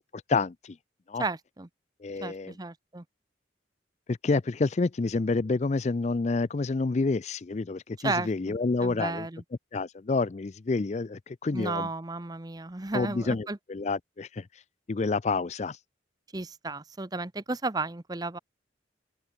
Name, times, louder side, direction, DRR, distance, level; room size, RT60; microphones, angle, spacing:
voice 1, 0.3-0.8 1.1-1.2 2.0-2.5 4.1-9.3 9.7-11.9 12.9-14.4 14.9-15.8, left 3 dB, 35° left, 0.4 m, -28 dB
voice 2, 1.2-1.7 2.2-3.0 8.0-8.5 8.8-9.4 11.5-13.6 16.3-18.4, right 3 dB, 20° right, 0.8 m, -33 dB
open air
head